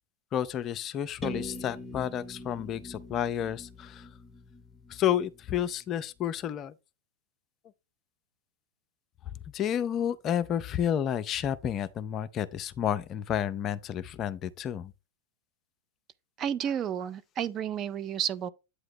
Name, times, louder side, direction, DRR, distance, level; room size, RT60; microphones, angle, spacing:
voice 1, 0.3-4.1 4.9-6.7 9.5-14.9, left 10 dB, 30° left, 0.5 m, -31 dB
sound 1, 1.2-5.1, equal, 15° left, 0.9 m, -42 dB
voice 2, 16.4-18.5, right 9 dB, 30° right, 0.5 m, -31 dB
8.3 x 2.8 x 5.2 m
figure-of-eight pair, 90°, 0 cm